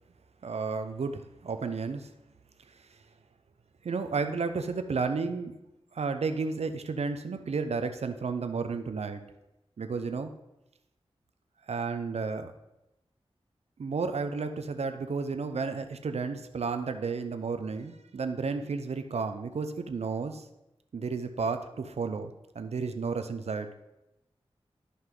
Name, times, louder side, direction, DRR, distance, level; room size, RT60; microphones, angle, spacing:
voice 1, 0.4-2.1 3.8-5.5 5.9-9.2 9.8-10.3 11.7-12.5 13.8-20.4 20.9-23.7, right 4 dB, 85° right, 8 dB, 0.8 m, -32 dB
12.5 x 5.5 x 3.9 m, 0.91 s
wide cardioid pair, 70°, 11 cm